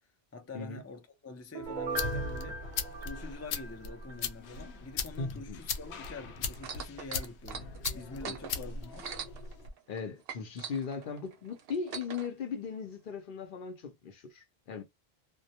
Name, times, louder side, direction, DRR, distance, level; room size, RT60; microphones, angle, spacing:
voice 1, 0.3-2.6 3.0-7.7 7.9-9.1, left 3 dB, 25° left, 0.3 m, -46 dB
sound 1, 1.6-9.7, left 5 dB, 90° left, 0.8 m, -39 dB
Piano, 1.6-4.2 4.6-4.7, right 3 dB, 50° right, 0.7 m, -39 dB
voice 2, 5.2-5.6 8.2-8.4 9.9-14.8, left 5 dB, 60° left, 0.7 m, -38 dB
sound 2, 6.5-10.0 10.3-12.3 13.1-13.2, right 7 dB, 75° right, 0.8 m, -42 dB
2.1 x 2.1 x 2.7 m
omnidirectional pair, 1.0 m